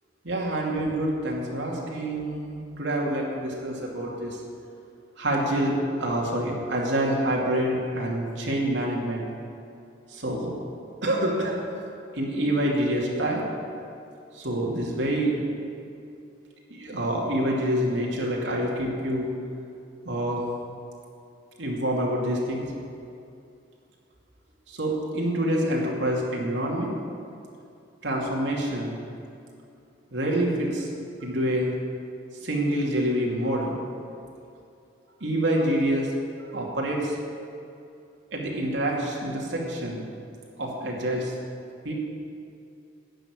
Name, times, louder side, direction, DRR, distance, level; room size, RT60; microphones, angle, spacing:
voice 1, 0.2-4.4 5.2-9.3 10.1-10.5 11.0-11.6 12.1-13.4 14.3-15.3 16.7-19.3 20.0-20.4 21.6-22.6 24.7-26.9 28.0-29.0 30.1-30.9 31.2-31.7 32.4-33.8 35.2-36.1 36.5-37.1 38.3-40.0 40.6-41.3 41.8-41.9, right 1 dB, 85° right, -2 dB, 2.6 m, -26 dB
12.0 x 6.9 x 9.8 m, 2.5 s
head